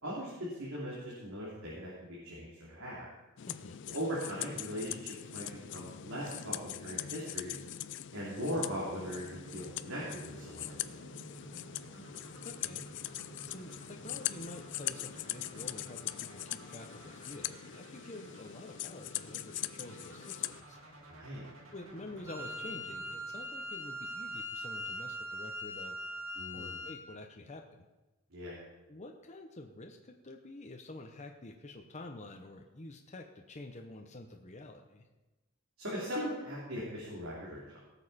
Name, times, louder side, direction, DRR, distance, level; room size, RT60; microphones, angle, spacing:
voice 1, 0.0-3.1 3.9-7.6 8.1-11.0 21.1-21.4 26.3-26.8 28.3-28.6 35.8-37.8, equal, 90° right, -7 dB, 3.2 m, -39 dB
sound 1, 3.4-20.6, left 13 dB, 60° left, 0.4 m, -42 dB
voice 2, 3.5-3.8 12.4-12.9 13.5-20.8 21.7-26.0 26.5-27.8 28.9-35.0, left 2 dB, 35° left, 3 dB, 0.9 m, -48 dB
sound 2, 9.0-23.9, right 1 dB, 75° right, 2.3 m, -53 dB
Wind instrument woodwind instrument, 22.3-27.1, left 1 dB, 15° right, 1.4 m, -41 dB
18.0 x 7.2 x 4.2 m, 1.1 s
head